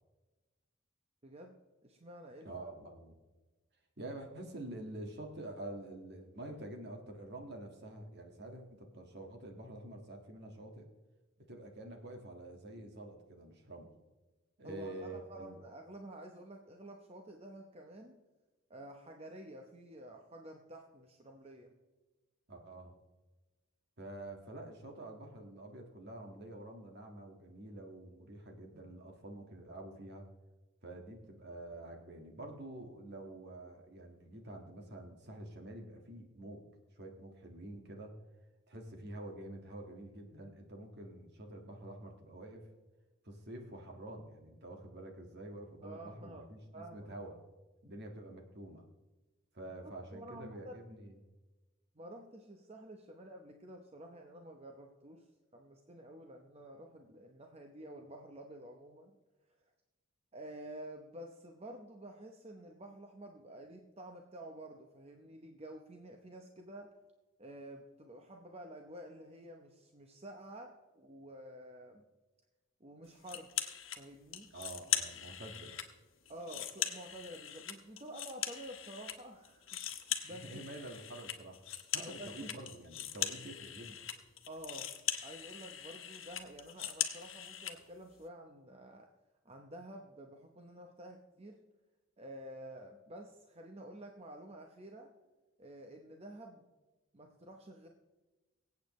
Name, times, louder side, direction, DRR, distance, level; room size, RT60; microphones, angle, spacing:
voice 1, 1.2-1.5 1.8-2.5 14.6-18.2 18.7-21.7 45.8-46.5 46.7-47.1 49.8-50.8 51.9-55.2 55.5-59.2 60.3-66.9 67.4-72.0 72.8-73.5 74.0-74.5 76.3-80.6 81.9-82.5 84.5-84.9 85.2-89.1 89.4-91.6 92.2-95.1 95.6-96.7 97.1-97.9, right 1 dB, 30° right, 3 dB, 0.9 m, -50 dB
voice 2, 2.4-3.2 4.0-10.9 11.5-13.9 14.6-15.6 22.5-22.9 24.0-30.3 30.8-36.6 37.0-38.1 38.7-42.7 43.2-47.4 47.8-48.8 49.5-51.2 74.5-75.8 80.3-81.6 81.9-84.1, right 1 dB, 55° right, 3 dB, 1.8 m, -47 dB
sound 1, 73.3-74.0 74.3-75.9 76.3-79.2 79.4-87.8, left 10 dB, 70° left, 1.2 m, -40 dB
24.5 x 8.3 x 3.2 m, 1.2 s
head